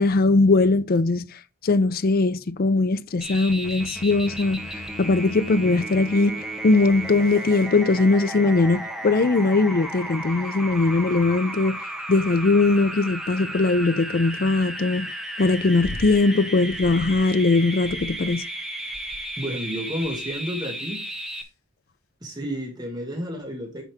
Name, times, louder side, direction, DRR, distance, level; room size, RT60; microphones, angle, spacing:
voice 1, 0.0-11.8 12.1-15.1 15.4-18.4, left 3 dB, 45° left, 0.5 m, -20 dB
sound 1, 3.2-21.4, right 1 dB, ahead, 1.2 m, -34 dB
sound 2, 15.8-16.2 16.7-17.3 17.8-18.4 18.9-19.4 20.0-20.4 21.1-21.4 22.4-22.5, left 1 dB, 90° left, 1.0 m, -39 dB
voice 2, 19.4-21.0 22.2-23.8, equal, 20° right, 1.9 m, -31 dB
9.2 x 5.5 x 3.5 m
head